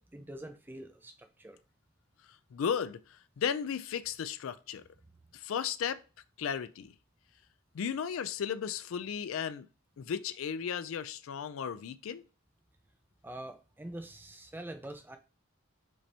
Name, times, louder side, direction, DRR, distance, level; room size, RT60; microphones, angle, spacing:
voice 1, 0.0-1.6 13.2-15.2, right 1 dB, 10° right, 0.4 m, -45 dB
voice 2, 2.5-4.8 5.3-6.0 6.4-6.9 7.7-9.7 10.0-12.2, left 7 dB, 75° left, 0.4 m, -35 dB
5.2 x 2.8 x 3.3 m
head